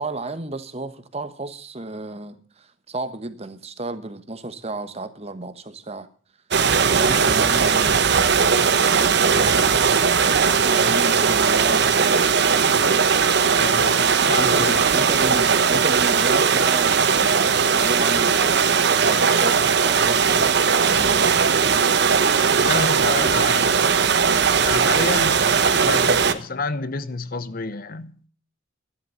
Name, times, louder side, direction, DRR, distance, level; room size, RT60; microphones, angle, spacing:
voice 1, 0.0-6.1 6.9-9.9 10.5-12.3 14.4-18.7 19.1-21.5, right 2 dB, 30° right, 1.2 m, -33 dB
sound 1, 6.5-26.3, right 6 dB, 60° right, 1.0 m, -18 dB
voice 2, 13.5-14.9 22.6-24.0 24.6-28.2, left 3 dB, 50° left, 0.8 m, -29 dB
13.5 x 11.5 x 6.9 m
head